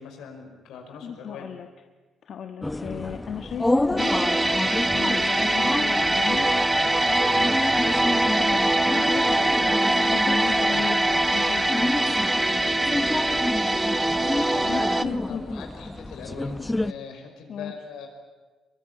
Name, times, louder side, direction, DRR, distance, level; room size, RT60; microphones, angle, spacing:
voice 1, 0.0-1.5 12.4-12.8 14.1-14.9 15.3-18.1, left 6 dB, 85° left, 4 dB, 5.6 m, -42 dB
voice 2, 1.0-1.7 2.2-4.3 4.9-6.5 6.8-7.7 8.2-11.9 14.6-15.4 17.5-17.7, left 7 dB, 60° left, 6 dB, 1.3 m, -36 dB
sound 1, 2.6-16.9, left 2 dB, 15° left, 0.7 m, -30 dB
sound 2, 4.0-15.0, right 1 dB, 10° right, 1.1 m, -23 dB
23.5 x 23.0 x 10.0 m, 1.4 s
cardioid pair, 90°, 0 cm